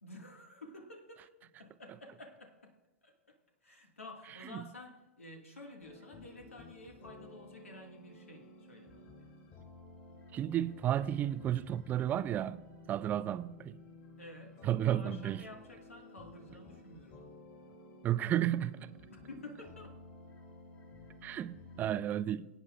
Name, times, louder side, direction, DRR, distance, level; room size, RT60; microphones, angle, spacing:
voice 1, 0.0-2.8 3.0-9.1 14.2-17.3 19.1-20.0, left 2 dB, 80° left, 1.9 m, -51 dB
sound 1, 5.8-22.0, left 2 dB, 35° left, 3.3 m, -54 dB
voice 2, 10.3-12.6 12.9-13.8 14.6-15.4 18.0-18.9 21.2-22.5, right 11 dB, 25° right, 0.4 m, -32 dB
23.5 x 9.0 x 2.4 m
figure-of-eight pair, 105°, 7 cm